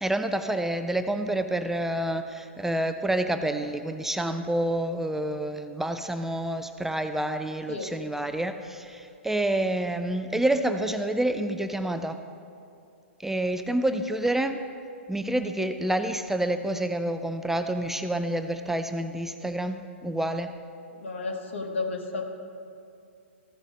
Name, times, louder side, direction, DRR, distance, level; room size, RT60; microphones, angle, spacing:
voice 1, 0.0-12.2 13.2-14.7 15.1-20.6, right 1 dB, 5° right, 8 dB, 0.3 m, -28 dB
voice 2, 20.9-22.2, left 3 dB, 70° left, 3 dB, 1.5 m, -32 dB
14.5 x 6.1 x 5.3 m, 2.5 s
figure-of-eight pair, 110°, 7 cm